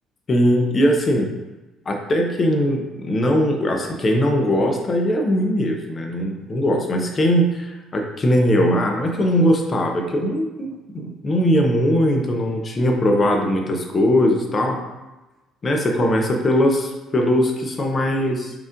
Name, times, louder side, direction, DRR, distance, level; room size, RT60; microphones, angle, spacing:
voice 1, 0.3-1.3 1.9-14.8 15.6-18.5, equal, 40° left, 2 dB, 0.8 m, -20 dB
4.8 x 3.6 x 2.6 m, 1.1 s
supercardioid pair, 65°, 0 cm